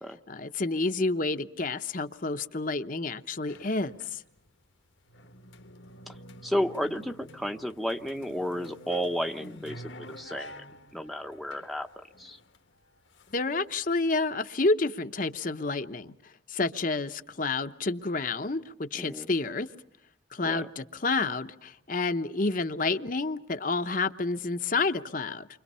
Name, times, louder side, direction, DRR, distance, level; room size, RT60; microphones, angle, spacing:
voice 1, 0.3-4.2 13.3-19.7 20.3-25.5, left 3 dB, 45° left, 8 dB, 0.9 m, -29 dB
sound 1, 3.5-4.5 4.8-13.7, equal, 80° left, 1.5 m, -49 dB
voice 2, 6.4-10.6 10.9-11.9 12.2-12.4 18.9-19.3 20.4-20.6, equal, ahead, 6 dB, 0.8 m, -32 dB
29.5 x 25.0 x 5.6 m, 0.76 s
head